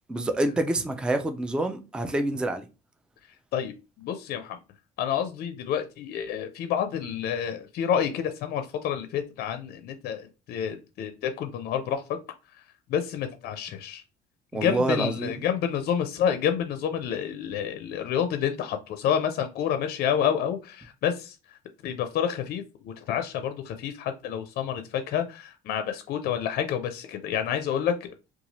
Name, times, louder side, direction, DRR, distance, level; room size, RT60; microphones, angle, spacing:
voice 1, 0.1-2.6 14.5-15.3, right 1 dB, 5° right, 8 dB, 0.3 m, -27 dB
voice 2, 3.5-4.6 5.0-12.0 12.9-14.0 14.5-21.4 21.8-27.9, left 8 dB, 65° left, 8 dB, 0.4 m, -29 dB
2.7 x 2.3 x 2.9 m, 0.29 s
cardioid pair, 110°, 17 cm